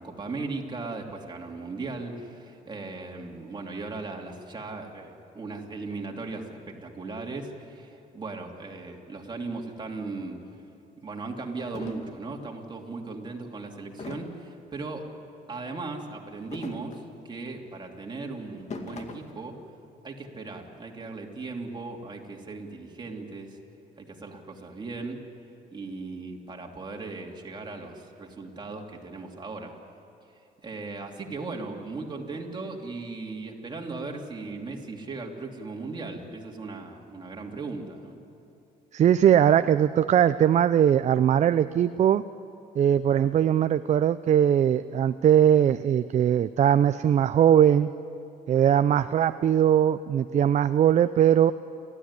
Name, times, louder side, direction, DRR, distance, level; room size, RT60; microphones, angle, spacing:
voice 1, 0.0-10.4 11.0-15.1 15.5-19.6 20.0-23.6 24.0-25.2 25.7-29.8 30.3-38.2, right 3 dB, 25° right, 1 dB, 2.9 m, -37 dB
sound 1, 10.5-10.6 11.2-11.3 11.7-12.2 14.0-14.5 16.3-17.2 18.5-19.3, left 4 dB, 40° left, 2.2 m, -41 dB
voice 2, 38.9-42.2 42.8-47.9 48.5-51.5, right 9 dB, 45° right, 12 dB, 0.5 m, -20 dB
30.0 x 13.0 x 9.9 m, 2.7 s
cardioid pair, 110°, 17 cm